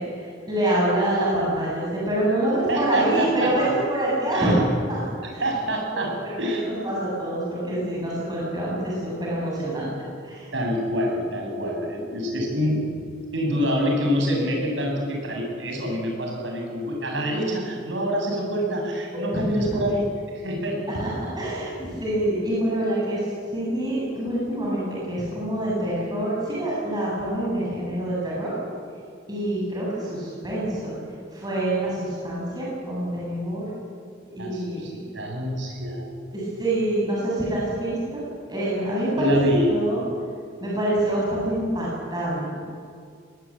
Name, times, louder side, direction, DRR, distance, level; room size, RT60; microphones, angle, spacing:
voice 1, 0.0-4.6 4.9-5.0 5.3-5.4 5.9-9.9 10.2-10.5 19.1-19.4 19.7-19.8 20.9-23.2 23.5-28.5 29.3-30.9 31.3-33.7 34.3-35.0 36.3-39.4 39.7-40.0 40.6-42.6, right 1 dB, 20° right, -6 dB, 7.8 m, -26 dB
voice 2, 2.7-3.5 4.3-4.5 5.4-6.1 6.4-6.6 10.5-12.8 13.3-20.1 20.3-21.0 34.4-36.1 39.2-39.7, equal, 70° right, 0 dB, 7.6 m, -26 dB
23.0 x 20.0 x 8.9 m, 2.2 s
head